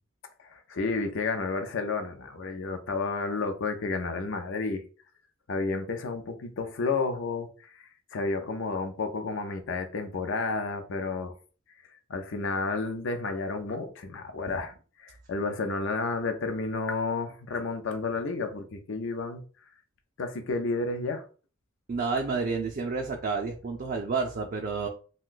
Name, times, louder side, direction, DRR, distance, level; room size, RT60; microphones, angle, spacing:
voice 1, 0.4-4.8 5.5-11.3 12.1-14.7 15.0-19.4 20.2-21.2, left 3 dB, 65° left, 0.5 m, -31 dB
voice 2, 21.9-24.9, right 4 dB, 40° right, 0.4 m, -30 dB
2.5 x 2.2 x 3.7 m
head